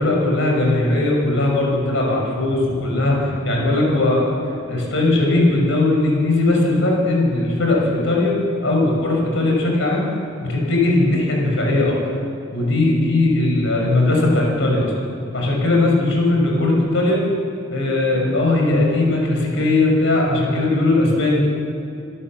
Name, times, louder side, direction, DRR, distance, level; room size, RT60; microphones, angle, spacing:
voice 1, 0.0-4.4 4.7-10.1 10.4-11.9 12.5-14.9 15.3-17.2 17.7-21.4, left 2 dB, 70° left, -1 dB, 5.9 m, -18 dB
27.0 x 14.0 x 7.5 m, 2.8 s
head